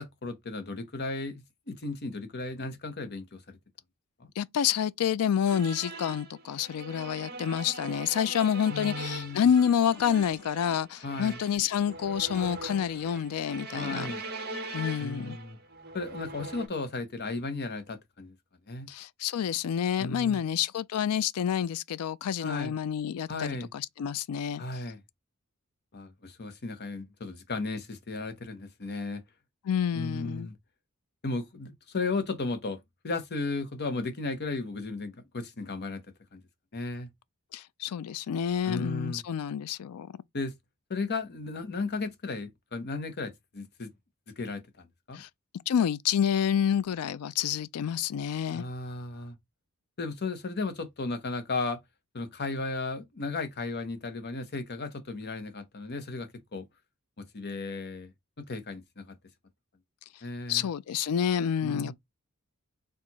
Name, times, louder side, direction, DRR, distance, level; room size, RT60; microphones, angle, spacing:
voice 1, 0.0-3.6 4.2-4.3 8.7-9.5 11.0-11.4 13.7-14.2 15.0-15.6 15.9-18.3 18.7-18.9 20.0-20.4 22.4-22.7 23.3-23.7 24.6-25.0 25.9-29.2 29.9-30.6 31.2-32.8 33.0-36.0 36.3-36.4 36.7-37.1 38.6-39.2 40.3-40.5 40.9-43.9 44.4-45.2 48.5-49.4 50.0-51.8 52.1-56.6 57.3-58.1 58.4-59.1 60.2-60.7 61.6-61.9, left 3 dB, 50° left, 0.9 m, -35 dB
voice 2, 4.4-14.1 14.7-15.4 18.9-24.6 29.7-30.5 37.5-40.1 45.1-45.3 45.7-48.7 60.5-61.9, left 8 dB, 75° left, 0.4 m, -28 dB
sound 1, 5.5-16.7, right 2 dB, 45° right, 1.4 m, -41 dB
4.6 x 2.4 x 4.0 m
head